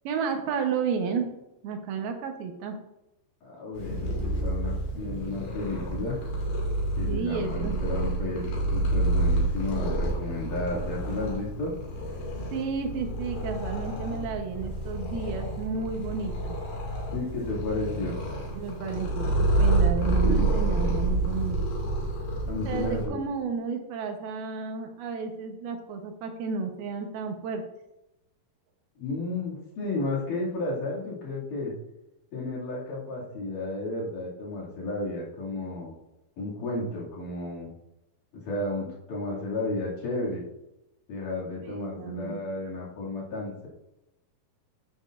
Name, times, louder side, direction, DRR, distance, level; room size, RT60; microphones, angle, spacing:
voice 1, 0.0-1.3 1.6-2.8 7.1-7.8 12.5-16.6 18.6-21.6 22.7-27.6 41.6-42.4, right 6 dB, 80° right, 4 dB, 2.8 m, -32 dB
voice 2, 3.4-6.2 7.0-8.4 8.7-11.7 17.1-18.2 22.5-23.2 29.0-31.7 32.3-35.9 36.4-37.7 38.3-40.4 41.1-43.7, left 2 dB, 60° left, -6 dB, 3.7 m, -32 dB
Purr, 3.7-23.1, right 2 dB, 80° left, 4.2 m, -28 dB
10.5 x 8.6 x 2.5 m, 0.92 s
omnidirectional pair, 4.4 m